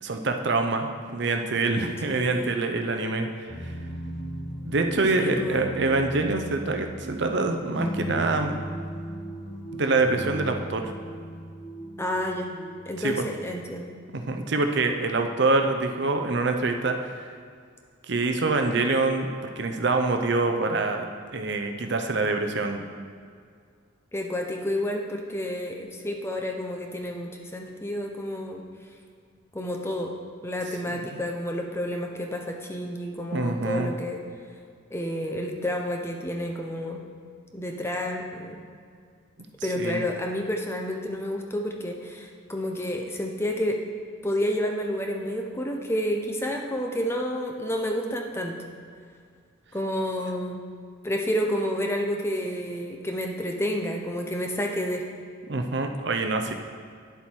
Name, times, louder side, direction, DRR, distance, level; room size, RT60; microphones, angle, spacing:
voice 1, 0.0-3.3 3.6-3.7 4.6-8.6 9.7-10.8 13.0-13.2 14.1-17.3 18.1-19.3 19.6-22.9 30.9-31.0 33.3-33.9 39.8-40.0 55.5-56.5, right 3 dB, 55° right, 5 dB, 0.6 m, -25 dB
voice 2, 2.1-2.6 5.1-5.7 12.0-12.5 12.9-14.0 24.1-28.6 29.5-30.2 30.4-34.2 34.9-37.0 37.5-38.6 39.6-43.8 44.2-48.6 49.7-50.6 51.0-55.0, equal, 10° left, 2 dB, 0.7 m, -30 dB
sound 1, 3.5-14.2, right 1 dB, 55° left, 2.2 m, -37 dB
10.5 x 7.3 x 4.5 m, 2.1 s
head